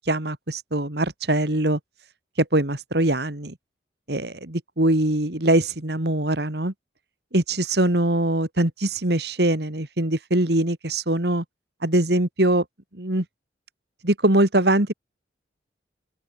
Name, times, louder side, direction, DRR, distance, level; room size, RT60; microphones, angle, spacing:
voice 1, 0.1-1.8 2.4-3.6 4.1-6.7 7.3-11.4 11.8-12.6 12.9-13.2 14.0-14.9, right 1 dB, 60° right, 2.4 m, -22 dB
open air
head